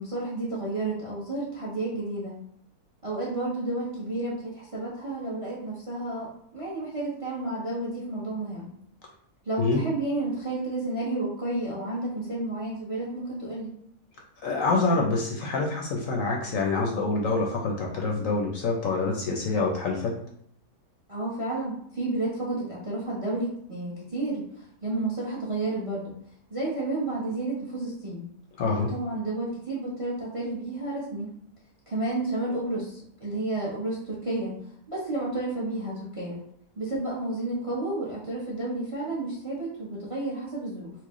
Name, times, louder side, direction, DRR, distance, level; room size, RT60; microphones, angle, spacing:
voice 1, 0.0-2.4 3.0-8.7 9.4-13.7 21.1-26.2 26.5-28.3 28.7-31.3 31.9-34.6 34.9-36.4 36.8-40.9, right 2 dB, 35° right, -5 dB, 0.6 m, -31 dB
voice 2, 14.4-20.2 28.6-28.9, left 3 dB, 70° left, 0 dB, 0.8 m, -26 dB
4.5 x 2.1 x 3.0 m, 0.67 s
omnidirectional pair, 1.7 m